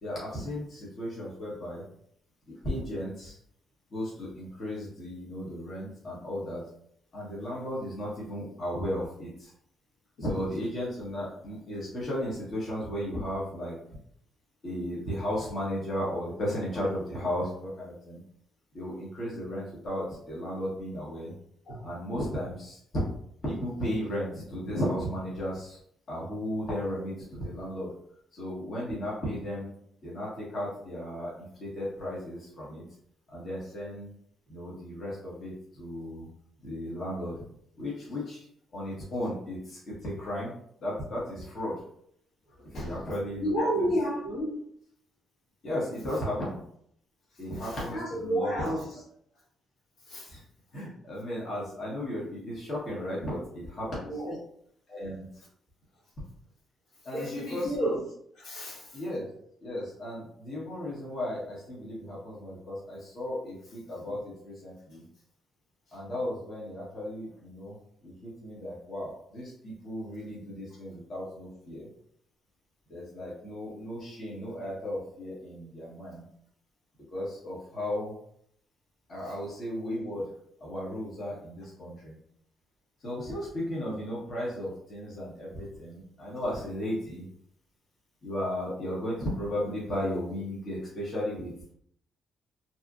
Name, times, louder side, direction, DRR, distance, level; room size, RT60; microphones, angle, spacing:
voice 1, 0.0-1.8 2.5-3.4 3.9-6.6 7.1-9.5 10.2-13.8 14.6-18.2 18.7-21.3 21.8-22.8 23.4-25.8 26.1-27.9 28.3-29.7 30.0-32.8 33.3-34.1 34.5-36.3 36.6-37.4 37.8-38.5 38.7-40.5 40.8-41.8 42.7-43.5 43.8-43.9 45.6-46.6 47.4-48.7 50.3-50.4 50.7-54.1 54.9-55.3 57.0-57.9 58.9-59.3 59.6-65.0 65.9-67.8 68.0-71.9 72.9-76.2 77.1-78.1 79.1-80.3 80.6-82.2 83.0-87.2 88.2-91.7, equal, 50° left, -6 dB, 1.1 m, -35 dB
voice 2, 42.6-43.0 43.4-44.6 47.6-48.9 50.1-50.3 54.1-54.4 57.1-58.0 58.3-59.0 79.2-79.3, right 1 dB, 75° left, -5 dB, 1.2 m, -31 dB
2.8 x 2.4 x 2.4 m, 0.68 s
cardioid pair, 90°, 0 cm